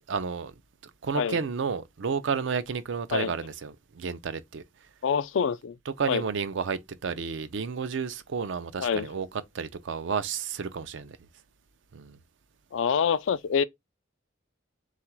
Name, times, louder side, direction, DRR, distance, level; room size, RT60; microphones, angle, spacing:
voice 1, 0.1-0.5 0.8-4.6 5.9-9.3 9.5-11.2 11.9-12.2, right 5 dB, 70° right, 0.4 m, -31 dB
voice 2, 5.0-5.7 6.1-6.2 8.8-9.1 12.7-13.6, left 7 dB, 75° left, 0.4 m, -26 dB
3.9 x 2.4 x 4.4 m
head